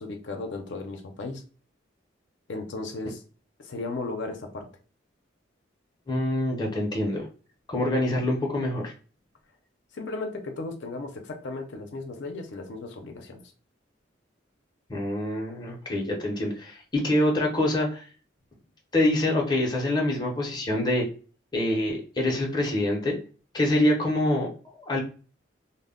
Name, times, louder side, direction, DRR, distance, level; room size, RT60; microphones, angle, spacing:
voice 1, 0.0-1.4 2.5-3.2 3.6-4.7 9.9-13.5, left 3 dB, 70° left, 4 dB, 0.5 m, -35 dB
voice 2, 6.1-7.3 7.7-8.9 14.9-18.0 18.9-21.1 21.5-23.2 23.5-24.5 24.8-25.0, left 1 dB, 20° left, -1 dB, 0.6 m, -25 dB
2.1 x 2.0 x 3.5 m, 0.37 s
head